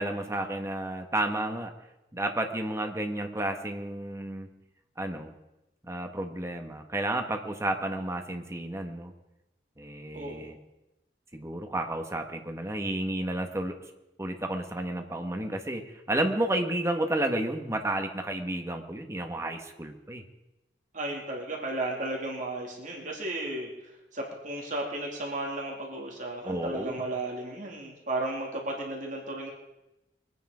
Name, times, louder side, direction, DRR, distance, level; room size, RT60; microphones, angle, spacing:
voice 1, 0.0-1.7 2.1-4.5 5.0-5.3 5.8-9.1 9.8-10.6 11.3-13.7 14.2-20.2 26.4-27.0, right 1 dB, 15° right, 5 dB, 1.4 m, -31 dB
voice 2, 10.1-10.5 20.9-23.7 24.1-29.5, right 2 dB, 45° right, -1 dB, 2.9 m, -34 dB
23.0 x 9.5 x 5.0 m, 0.96 s
head